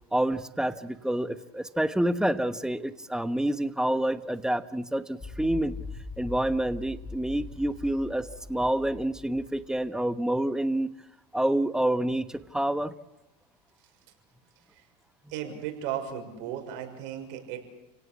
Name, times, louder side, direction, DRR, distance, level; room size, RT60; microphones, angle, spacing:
voice 1, 0.1-5.8 6.2-10.9 11.3-12.9, right 1 dB, 5° right, 12 dB, 1.2 m, -28 dB
sound 1, 5.2-9.9, left 3 dB, 20° left, 3.4 m, -42 dB
voice 2, 15.3-17.6, right 10 dB, 65° right, 4 dB, 6.3 m, -35 dB
29.5 x 17.5 x 8.5 m, 0.94 s
supercardioid pair, 115°, 21 cm